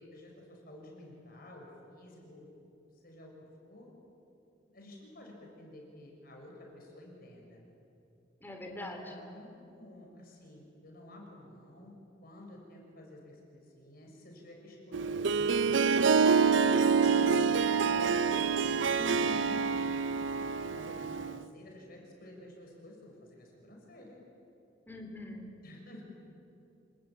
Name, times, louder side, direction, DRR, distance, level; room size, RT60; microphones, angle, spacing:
voice 1, 0.0-2.6 3.0-3.3 3.6-3.9 4.7-7.6 8.8-12.0 12.2-16.2 17.0-19.9 20.5-24.2 25.6-26.0, left 1 dB, 55° left, 0 dB, 6.3 m, -51 dB
voice 2, 8.4-9.0 19.0-19.6 24.9-25.5, left 1 dB, 10° left, 2 dB, 3.2 m, -42 dB
Harp, 14.9-21.4, right 5 dB, 85° right, 0.6 m, -27 dB
27.5 x 19.5 x 8.8 m, 2.7 s
head